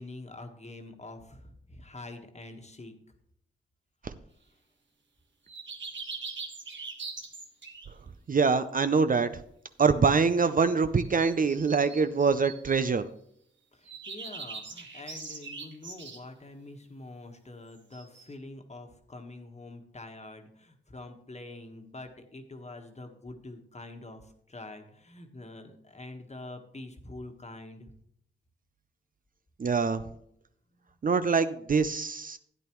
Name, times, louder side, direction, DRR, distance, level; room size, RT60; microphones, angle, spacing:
voice 1, 0.0-2.9 13.7-27.9, left 2 dB, 35° left, 5 dB, 1.4 m, -45 dB
sound 1, 5.5-7.9 11.0-12.9 13.9-16.2 17.9-18.2, right 4 dB, 65° right, 1.4 m, -42 dB
voice 2, 8.3-9.4 9.8-13.0 29.6-30.0 31.0-32.4, right 5 dB, 45° right, 11 dB, 0.5 m, -24 dB
12.0 x 9.0 x 3.1 m, 0.70 s
cardioid pair, 55°, 21 cm